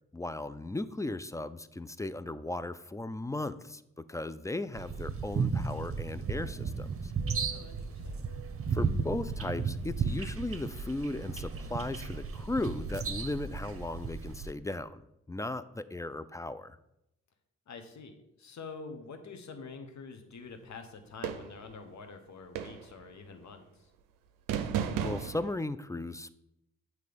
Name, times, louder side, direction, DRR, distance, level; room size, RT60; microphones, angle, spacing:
voice 1, 0.1-7.1 8.7-16.8 25.0-26.3, left 2 dB, 10° left, 14 dB, 0.3 m, -36 dB
sound 1, 4.7-14.5, right 5 dB, 45° right, 0.8 m, -34 dB
voice 2, 7.5-8.2 17.7-23.9, left 4 dB, 60° left, 6 dB, 1.1 m, -47 dB
sound 2, 21.2-21.7 22.6-23.0 24.5-25.5, right 8 dB, 80° right, 0.5 m, -33 dB
7.5 x 3.1 x 5.1 m, 0.84 s
hypercardioid pair, 40°, 32 cm